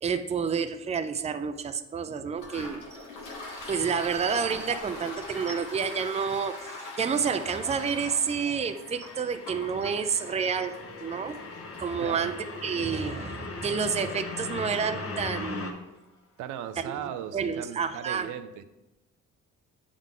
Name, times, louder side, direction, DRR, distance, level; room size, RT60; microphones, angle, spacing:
voice 1, 0.0-2.8 3.5-11.4 11.8-15.8 16.8-18.3, right 6 dB, 20° right, 10 dB, 0.4 m, -29 dB
Toilet flush, 2.3-15.7, left 2 dB, 90° left, 1.3 m, -44 dB
sound 1, 6.7-15.7, left 3 dB, 50° left, 1.0 m, -40 dB
voice 2, 12.0-12.3 16.4-18.6, right 9 dB, 90° right, 10 dB, 0.5 m, -37 dB
8.8 x 3.7 x 3.7 m, 0.99 s
cardioid pair, 90°, 30 cm